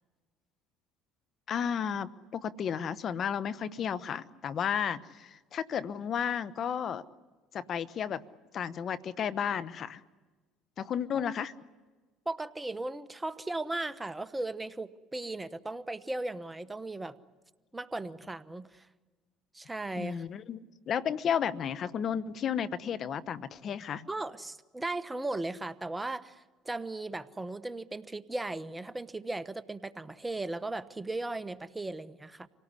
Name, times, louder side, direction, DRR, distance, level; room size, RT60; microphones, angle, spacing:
voice 1, 1.5-7.0 7.5-8.2 8.5-10.0 10.8-11.5 20.0-24.1, left 8 dB, 50° left, 15 dB, 1.0 m, -33 dB
voice 2, 12.2-17.2 17.7-18.9 19.5-20.2 24.1-32.5, right 2 dB, 15° right, 13 dB, 1.1 m, -37 dB
26.5 x 18.0 x 9.8 m, 1.3 s
supercardioid pair, 80°, 0 cm